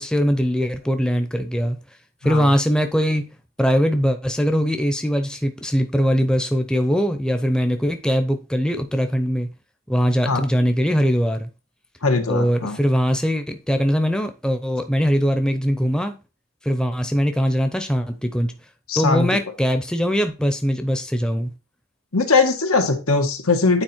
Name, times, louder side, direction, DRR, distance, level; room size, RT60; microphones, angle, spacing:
voice 1, 0.0-1.8 2.2-9.5 9.9-11.5 12.3-16.2 16.6-18.5 19.0-21.5, equal, 5° left, 0.6 m, -21 dB
voice 2, 12.0-12.8 18.9-19.3 22.1-23.8, left 3 dB, 90° left, 1.8 m, -20 dB
8.9 x 4.2 x 4.4 m
head